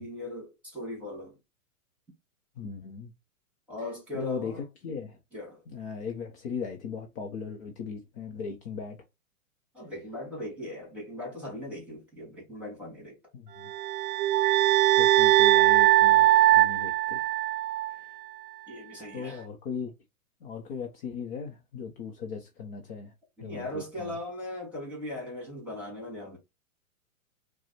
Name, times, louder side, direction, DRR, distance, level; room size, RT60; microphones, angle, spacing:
voice 1, 0.0-1.4 3.7-4.6 5.3-5.6 9.7-13.2 18.7-19.4 23.4-26.4, left 1 dB, 5° right, 2.5 m, -39 dB
voice 2, 2.6-3.1 4.1-5.2 5.7-9.0 13.3-13.7 14.7-17.2 17.9-18.1 19.1-19.9 20.4-23.1 23.4-24.2, left 6 dB, 40° left, 0.9 m, -38 dB
sound 1, 13.7-17.9, right 14 dB, 40° right, 0.6 m, -21 dB
4.6 x 2.3 x 4.2 m
hypercardioid pair, 140°, 43 cm